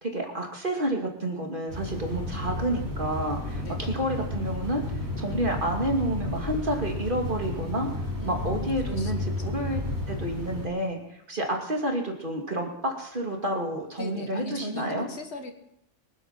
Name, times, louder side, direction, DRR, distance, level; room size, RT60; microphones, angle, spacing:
voice 1, 0.0-9.8 10.1-15.1, right 1 dB, 40° right, 1 dB, 2.7 m, -30 dB
sound 1, 1.7-10.7, left 2 dB, 15° right, 3.5 m, -32 dB
voice 2, 3.5-4.0 8.2-9.6 14.0-15.5, left 1 dB, 55° left, 6 dB, 1.9 m, -38 dB
24.0 x 8.2 x 5.9 m, 0.79 s
omnidirectional pair, 1.4 m